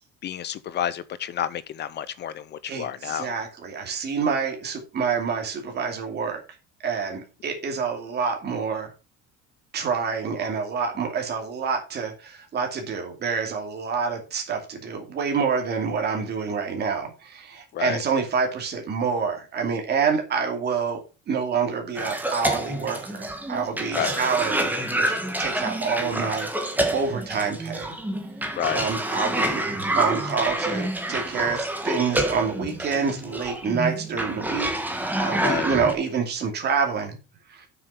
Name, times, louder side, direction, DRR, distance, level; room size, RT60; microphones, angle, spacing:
voice 1, 0.2-3.3 17.7-18.0 23.9-24.2 28.6-28.9 35.4-35.7, left 10 dB, 35° left, 0.5 m, -30 dB
voice 2, 2.7-6.4 6.8-8.9 9.7-27.9 28.4-29.6 30.0-37.2 37.5-37.7, right 5 dB, 35° right, 2.6 m, -27 dB
Cough, 22.0-35.9, right 1 dB, 5° right, 1.3 m, -28 dB
7.3 x 6.9 x 5.7 m
cardioid pair, 170°, 31 cm